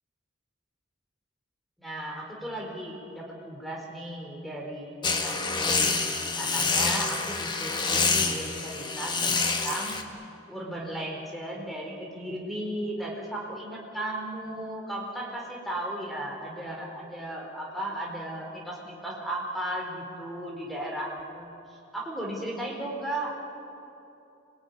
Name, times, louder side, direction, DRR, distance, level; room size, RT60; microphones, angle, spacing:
voice 1, 1.8-6.0 6.4-10.0 10.5-23.3, right 1 dB, ahead, -1 dB, 4.1 m, -35 dB
sound 1, 5.0-10.0, left 4 dB, 25° left, 1.5 m, -27 dB
26.0 x 20.0 x 9.6 m, 2.9 s
head